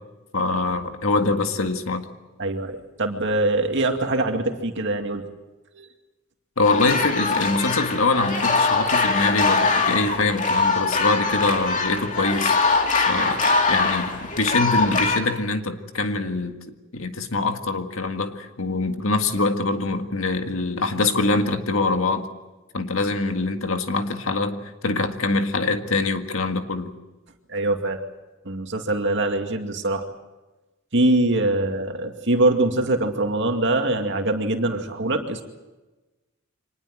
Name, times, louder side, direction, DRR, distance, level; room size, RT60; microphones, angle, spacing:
voice 1, 0.3-2.1 6.6-16.6 16.9-22.3 22.7-26.9, left 3 dB, 75° left, 6 dB, 1.9 m, -24 dB
voice 2, 2.4-5.2 5.8-5.9 27.5-28.0 28.4-30.0 30.9-35.4, right 2 dB, 60° right, 5 dB, 2.3 m, -23 dB
sound 1, 6.6-15.2, left 4 dB, 40° left, 2.5 m, -22 dB
25.0 x 20.0 x 7.8 m, 1.1 s
head